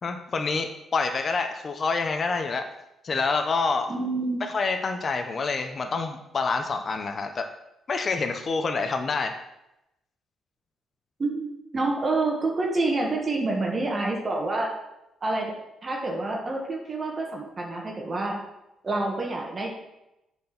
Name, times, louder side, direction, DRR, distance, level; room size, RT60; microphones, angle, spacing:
voice 1, 0.0-2.7 3.0-3.9 4.4-7.5 7.9-9.4, left 4 dB, 40° left, 6 dB, 0.8 m, -27 dB
voice 2, 3.9-4.4 11.2-14.7 15.2-15.5 15.8-18.4 18.8-19.7, right 2 dB, 35° right, -1 dB, 1.5 m, -27 dB
7.3 x 4.5 x 5.9 m, 0.90 s
cardioid pair, 90°, 0 cm